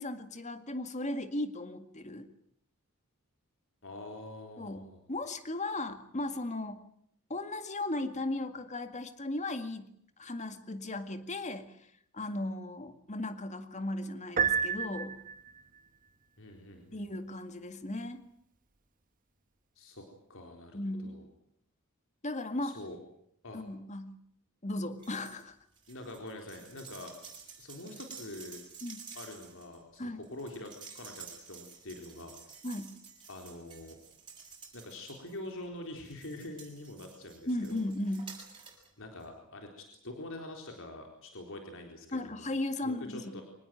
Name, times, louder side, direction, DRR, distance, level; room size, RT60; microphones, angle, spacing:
voice 1, 0.0-2.3 4.6-6.8 7.3-9.9 10.2-11.8 12.1-15.2 16.9-18.2 20.7-21.2 22.2-22.8 23.5-24.2 24.6-25.6 28.8-29.0 30.0-30.2 32.6-32.9 37.5-38.4 42.1-43.4, left 1 dB, 30° left, 9 dB, 2.0 m, -36 dB
voice 2, 3.8-5.0 16.4-17.0 19.8-21.3 22.6-23.0 23.4-23.6 25.9-27.1 27.6-28.6 29.1-32.7 33.3-34.0 34.7-37.9 39.0-42.5 42.8-43.4, left 1 dB, 60° left, 3 dB, 4.1 m, -45 dB
Piano, 14.4-15.6, right 6 dB, 40° right, 1.5 m, -30 dB
sound 1, 25.0-25.4 25.7-35.5 36.0-38.9 39.2-39.3, right 6 dB, 20° right, 7.5 m, -51 dB
25.5 x 19.5 x 9.3 m, 0.71 s
head